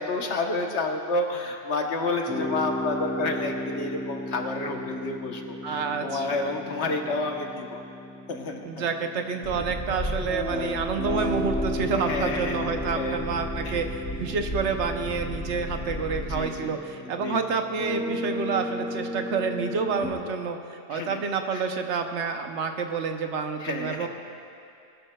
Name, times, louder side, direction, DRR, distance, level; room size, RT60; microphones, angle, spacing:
voice 1, 0.0-7.8 8.3-8.6 9.5-9.6 10.2-10.8 12.0-13.2 13.6-13.8 16.3-16.7 17.1-17.4 20.9-21.2 21.5-21.6 23.6-24.1, left 2 dB, 65° left, 3 dB, 1.2 m, -30 dB
sound 1, 2.3-20.1, left 1 dB, ahead, 2.2 m, -35 dB
voice 2, 5.6-6.5 8.6-24.1, right 5 dB, 70° right, 5 dB, 1.0 m, -29 dB
sound 2, 9.4-16.4, equal, 40° left, 1.7 m, -35 dB
20.0 x 12.5 x 2.2 m, 2.5 s
omnidirectional pair, 1.3 m